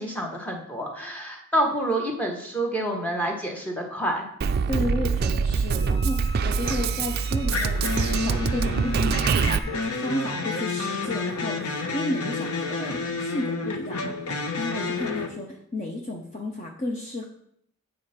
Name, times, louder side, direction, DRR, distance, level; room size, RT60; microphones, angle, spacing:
voice 1, 0.0-4.3, right 1 dB, 5° left, 1 dB, 1.2 m, -28 dB
Drum kit, 4.4-9.6, right 5 dB, 45° right, 0.3 m, -24 dB
voice 2, 4.7-7.9 8.2-9.3 10.0-14.1 14.6-17.3, left 1 dB, 35° left, 1 dB, 0.7 m, -32 dB
Wind instrument woodwind instrument, 5.7-10.3, left 1 dB, 15° right, 1.2 m, -45 dB
sound 1, 6.6-6.9 7.5-15.3, left 3 dB, 90° left, 1.0 m, -30 dB
7.8 x 4.9 x 5.8 m, 0.69 s
head